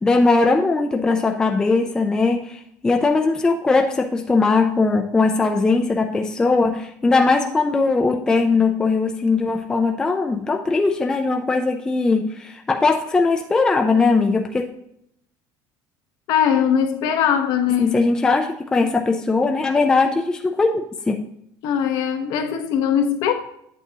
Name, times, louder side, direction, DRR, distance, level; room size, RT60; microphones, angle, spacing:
voice 1, 0.0-14.6 17.8-20.7 21.1-21.2, left 3 dB, 10° left, 0.4 m, -19 dB
voice 2, 16.3-18.0 21.6-23.3, left 8 dB, 55° left, 0.9 m, -20 dB
8.4 x 7.9 x 2.8 m
cardioid pair, 175°, 8 cm